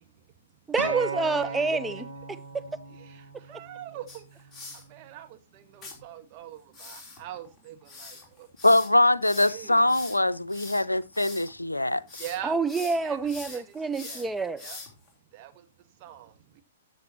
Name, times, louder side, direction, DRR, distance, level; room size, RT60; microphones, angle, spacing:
voice 1, 0.7-2.0 2.5-2.6 12.4-14.6, right 4 dB, 10° right, 0.6 m, -27 dB
Acoustic guitar, 0.8-5.0 5.9-6.0, right 4 dB, 80° right, 2.3 m, -38 dB
voice 2, 1.3-1.8 3.5-4.2 4.9-5.3 5.5-8.1 9.4-9.8 12.2-13.2 13.5-13.6 14.0-14.2 14.6-14.8 15.3-15.5 16.0-16.3, right 12 dB, 35° right, 1.4 m, -42 dB
sound 1, 4.1-4.8 5.8-6.0 6.7-11.5 11.9-12.4 12.7-15.1, left 4 dB, 10° left, 3.3 m, -43 dB
voice 3, 8.6-12.0, left 1 dB, 85° left, 0.5 m, -23 dB
13.5 x 7.7 x 2.9 m
figure-of-eight pair, 110°, 0 cm